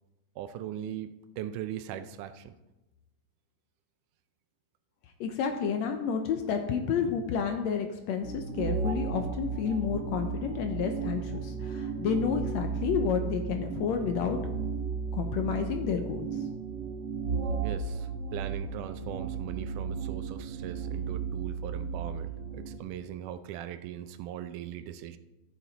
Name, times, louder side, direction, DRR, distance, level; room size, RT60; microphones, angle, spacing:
voice 1, 0.4-2.6 17.6-25.2, right 10 dB, 80° right, 11 dB, 2.1 m, -40 dB
voice 2, 5.2-14.4 15.1-16.3, left 7 dB, 75° left, 6 dB, 1.7 m, -30 dB
sound 1, 8.2-22.8, right 5 dB, 65° right, 1.0 m, -34 dB
14.0 x 7.2 x 4.1 m, 1.0 s
omnidirectional pair, 3.7 m